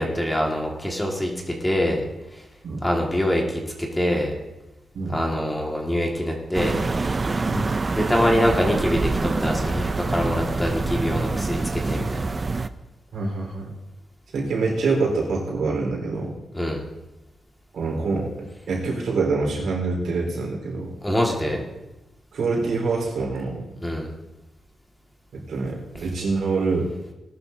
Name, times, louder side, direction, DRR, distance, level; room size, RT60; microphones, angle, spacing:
voice 1, 0.0-2.0 2.8-4.3 5.1-6.8 7.9-12.2 16.5-16.8 21.0-21.6 23.8-24.1, equal, 10° left, 0 dB, 1.9 m, -24 dB
sound 1, 6.5-12.7, right 3 dB, 30° right, 0.5 m, -25 dB
voice 2, 13.1-13.7 14.3-16.3 17.7-20.9 22.3-23.6 25.3-26.9, right 3 dB, 85° right, -1 dB, 4.1 m, -25 dB
19.0 x 11.5 x 2.7 m, 1.0 s
wide cardioid pair, 125°, 0 cm